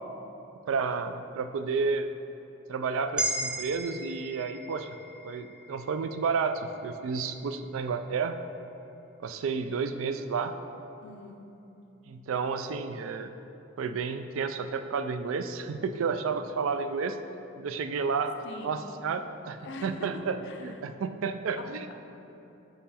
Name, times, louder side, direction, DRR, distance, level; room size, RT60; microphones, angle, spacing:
voice 1, 0.7-2.1 2.7-4.9 5.2-8.4 9.2-10.5 12.1-13.3 13.8-17.2 17.6-18.4 18.6-21.9, right 5 dB, 80° right, 9 dB, 0.4 m, -31 dB
sound 1, 3.2-7.4, right 1 dB, 5° right, 0.3 m, -36 dB
voice 2, 11.0-11.4 18.4-19.1 19.6-20.9 21.6-21.9, left 2 dB, 60° left, 4 dB, 0.6 m, -43 dB
5.7 x 5.0 x 4.2 m, 3.0 s
head